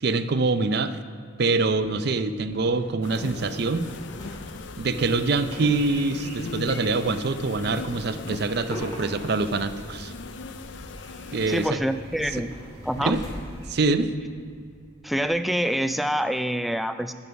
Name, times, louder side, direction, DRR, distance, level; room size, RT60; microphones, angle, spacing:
voice 1, 0.0-1.0 1.4-3.9 4.8-10.1 11.3-11.8 13.0-13.2 13.7-14.1, right 3 dB, 50° right, 11 dB, 0.5 m, -25 dB
sound 1, 1.6-15.3, equal, 15° left, 2.9 m, -45 dB
sound 2, 3.0-11.7, left 4 dB, 60° left, 0.5 m, -39 dB
sound 3, 4.2-13.7, right 1 dB, 30° right, 1.6 m, -47 dB
voice 2, 11.5-12.5 12.8-13.2 15.0-17.1, equal, ahead, 9 dB, 0.3 m, -26 dB
10.5 x 9.5 x 5.8 m, 2.2 s
head